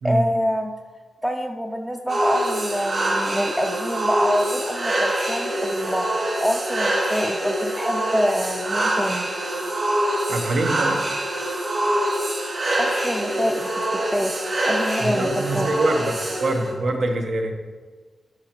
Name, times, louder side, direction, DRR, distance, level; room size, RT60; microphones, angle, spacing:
voice 1, 0.0-0.7 1.2-6.1 6.4-9.3 12.8-14.3 14.6-15.7, equal, 5° right, 3 dB, 0.4 m, -26 dB
sound 1, 2.1-16.7, right 1 dB, 45° right, 2.5 m, -25 dB
voice 2, 10.3-11.0 15.0-16.0 16.4-17.5, right 2 dB, 80° right, 3 dB, 1.0 m, -24 dB
10.5 x 5.7 x 3.0 m, 1.4 s
wide cardioid pair, 120°, 0 cm